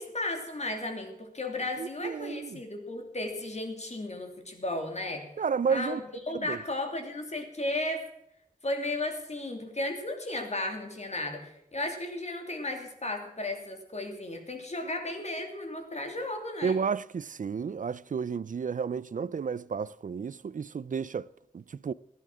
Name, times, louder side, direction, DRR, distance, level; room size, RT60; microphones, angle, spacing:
voice 1, 0.0-5.3 5.7-8.0 8.6-16.8, left 2 dB, 50° left, 3.0 m, -34 dB
voice 2, 1.8-2.6 5.4-6.0 6.3-6.6 16.6-21.3 21.5-21.9, right 6 dB, 65° right, 0.4 m, -32 dB
16.0 x 10.5 x 6.2 m
wide cardioid pair, 80°, 15 cm